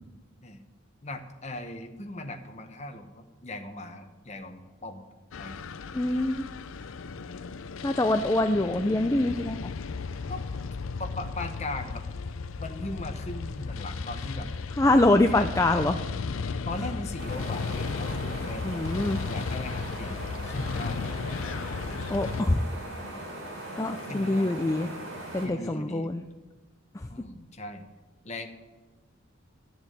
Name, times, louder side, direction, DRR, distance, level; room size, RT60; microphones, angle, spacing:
voice 1, 1.0-5.1 5.3-5.6 10.3-10.4 11.0-12.0 12.6-14.5 14.8-15.5 16.6-18.9 19.2-21.1 24.0-24.6 25.4-26.1 27.1-27.8 28.2-28.5, left 2 dB, 35° left, 6 dB, 1.1 m, -39 dB
sound 1, 5.3-22.4, left 4 dB, 75° left, 0.5 m, -35 dB
voice 2, 5.9-6.5 7.8-9.7 14.8-16.0 18.6-19.2 22.1-22.7 23.8-24.9 25.3-26.2 26.9-27.0, left 2 dB, 15° left, 6 dB, 0.4 m, -24 dB
sound 2, 17.2-25.4, right 1 dB, 75° right, 5.4 m, -39 dB
12.5 x 7.1 x 9.2 m, 1.2 s
head